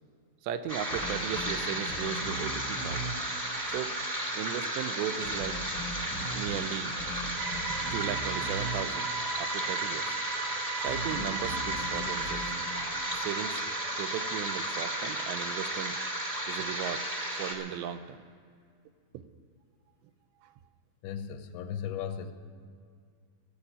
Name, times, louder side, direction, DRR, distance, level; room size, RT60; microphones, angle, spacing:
voice 1, 0.4-3.1 3.7-3.9 4.4-5.6 6.3-7.0 7.9-9.1 9.4-10.2 10.8-12.5 13.2-13.7 14.0-16.0 16.5-17.1 17.4-18.2 20.4-20.5, right 10 dB, 85° right, 11 dB, 2.7 m, -36 dB
sound 1, 0.7-17.5, right 1 dB, 20° right, 1.1 m, -34 dB
sound 2, 0.9-15.1, right 1 dB, 40° right, 2.8 m, -42 dB
sound 3, 7.4-17.5, right 4 dB, 65° right, 2.0 m, -39 dB
voice 2, 21.0-22.3, left 8 dB, 90° left, 8 dB, 3.2 m, -36 dB
15.5 x 8.1 x 10.0 m, 2.1 s
omnidirectional pair, 5.3 m